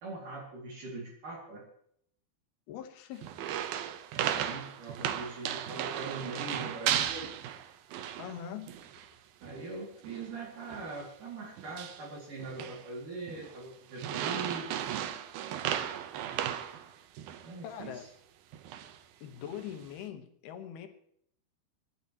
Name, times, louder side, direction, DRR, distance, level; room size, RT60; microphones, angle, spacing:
voice 1, 0.0-1.7 4.3-7.3 9.4-14.9 17.4-18.0, right 3 dB, 50° right, -3 dB, 3.7 m, -42 dB
voice 2, 2.7-3.3 8.2-8.7 17.6-18.0 19.2-20.9, left 9 dB, 70° left, 6 dB, 2.9 m, -42 dB
sound 1, 3.2-8.4 8.7-9.1 9.4-9.6 10.0-10.3 10.7-11.0 11.6-12.1 12.4-12.8 13.3-13.6 14.0-17.5 17.8-17.9 18.5-19.0 19.4-19.9, right 10 dB, 75° right, 2.3 m, -35 dB
27.0 x 11.5 x 3.0 m, 0.67 s
omnidirectional pair, 5.2 m